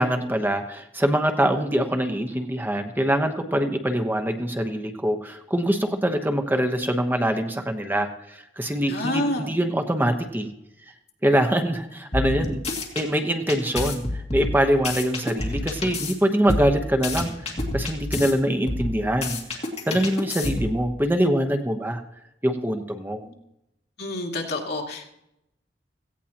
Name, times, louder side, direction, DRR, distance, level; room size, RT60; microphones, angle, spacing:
voice 1, 0.0-10.5 11.2-12.6 12.9-22.0 22.4-23.2, equal, 10° right, 5 dB, 1.0 m, -24 dB
voice 2, 8.9-9.5 23.2-23.3 24.0-25.1, left 1 dB, 65° left, 0 dB, 2.5 m, -28 dB
sound 1, 12.1-13.0 13.5-16.1 16.5-18.3 18.7-20.8, left 2 dB, 40° left, 2.5 m, -29 dB
17.0 x 16.0 x 3.0 m, 0.83 s
head